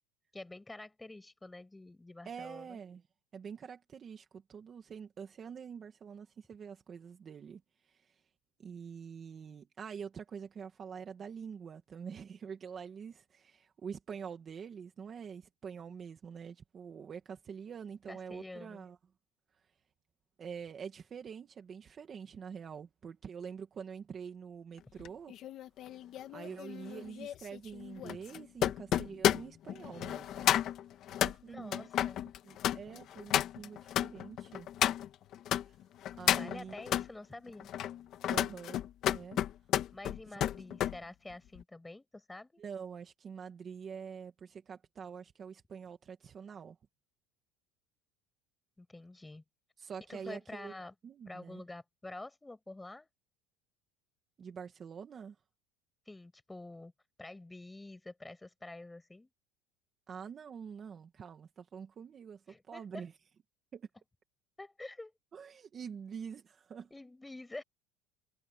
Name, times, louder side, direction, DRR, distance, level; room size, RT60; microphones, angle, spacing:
voice 1, 0.3-2.8 18.1-18.9 31.5-32.2 36.3-37.7 39.9-42.6 48.8-49.4 50.1-50.9 51.3-53.1 56.1-56.9 57.2-59.3 62.5-63.0 64.6-65.1 66.9-67.6, left 2 dB, 5° left, 6.3 m, -48 dB
voice 2, 2.2-3.0 3.3-8.2 8.6-19.0 20.4-25.3 26.3-30.6 31.2-31.9 32.4-34.7 35.7-35.8 36.2-36.8 38.3-38.8 39.1-39.4 42.6-46.8 49.8-50.7 51.0-51.6 54.4-55.4 60.1-63.1 63.7-63.9 65.3-66.9, right 7 dB, 25° right, 2.0 m, -46 dB
sound 1, 25.0-35.6 36.0-37.1 37.6-41.0 41.3-41.6, left 11 dB, 40° left, 1.6 m, -32 dB
cardioid pair, 160°, 0 cm